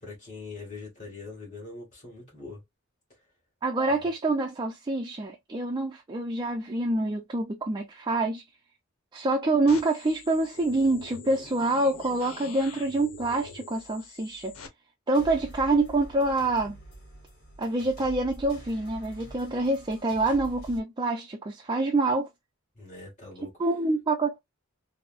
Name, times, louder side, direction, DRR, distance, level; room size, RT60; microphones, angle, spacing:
voice 1, 0.0-2.6 3.9-4.1 22.8-23.7, left 3 dB, 35° left, 1.9 m, -43 dB
voice 2, 3.6-8.4 9.1-14.6 15.1-16.8 17.6-22.3 23.6-24.4, right 2 dB, 20° right, 0.4 m, -26 dB
sound 1, 9.7-14.7, left 5 dB, 85° left, 0.9 m, -45 dB
sound 2, 15.1-20.8, right 1 dB, 55° left, 1.6 m, -45 dB
3.8 x 2.0 x 2.4 m
head